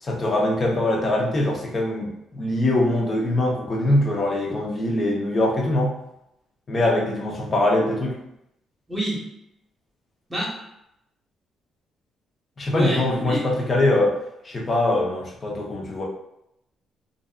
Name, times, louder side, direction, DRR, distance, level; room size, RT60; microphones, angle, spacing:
voice 1, 0.0-5.9 6.7-8.2 12.6-14.1 14.4-16.1, left 1 dB, 35° left, -1 dB, 0.7 m, -22 dB
voice 2, 8.9-9.2 10.3-10.6 12.7-13.4, equal, 5° right, -5 dB, 1.2 m, -27 dB
2.5 x 2.5 x 2.3 m, 0.82 s
cardioid pair, 90°, 0 cm